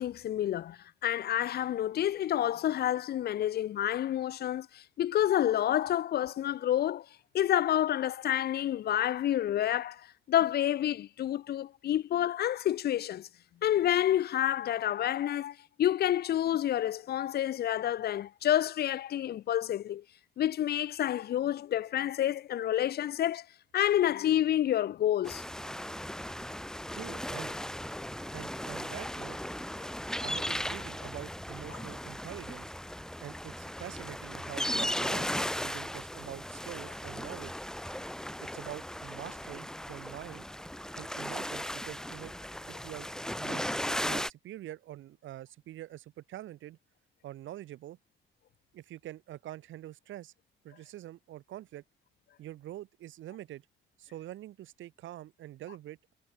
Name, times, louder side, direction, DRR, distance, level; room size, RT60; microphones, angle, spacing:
voice 1, 0.0-7.1 7.3-13.3 13.6-20.0 20.4-23.5 23.7-25.4 31.7-31.8, left 11 dB, 55° left, 0.4 m, -29 dB
sound 1, 25.2-44.3, equal, 5° left, 1.2 m, -37 dB
voice 2, 26.9-27.6 28.3-29.4 30.2-32.7 33.2-37.5 38.5-40.5 41.0-42.3 42.7-43.1 43.4-46.8 47.2-48.0 48.7-50.3 50.6-51.8 52.4-53.6 54.0-56.1, right 14 dB, 75° right, 1.0 m, -45 dB
cardioid pair, 90°, 20 cm